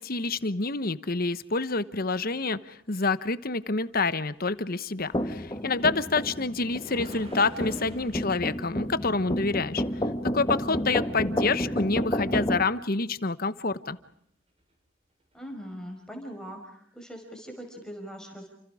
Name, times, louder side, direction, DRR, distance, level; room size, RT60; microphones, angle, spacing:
voice 1, 0.0-9.8 10.3-14.0, left 3 dB, 45° left, 13 dB, 1.1 m, -28 dB
sound 1, 5.1-12.6, equal, 20° left, 1.6 m, -31 dB
sound 2, 5.4-10.7 14.6-14.7 15.3-15.4, equal, 30° right, 7.9 m, -48 dB
voice 2, 11.2-11.6 15.3-18.5, equal, 5° left, 2 dB, 5.4 m, -41 dB
30.0 x 27.5 x 5.0 m, 0.70 s
head